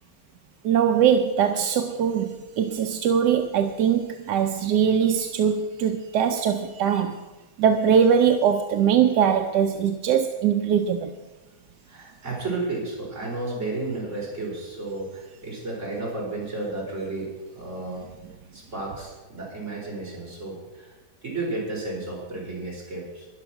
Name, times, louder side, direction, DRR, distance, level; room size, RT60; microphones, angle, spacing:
voice 1, 0.6-7.2 7.6-11.1, right 8 dB, 85° right, 1.3 m, -21 dB
voice 2, 11.9-18.0 18.5-20.9 21.2-23.3, right 2 dB, 45° right, 4.9 m, -32 dB
12.5 x 10.5 x 5.9 m
omnidirectional pair, 1.8 m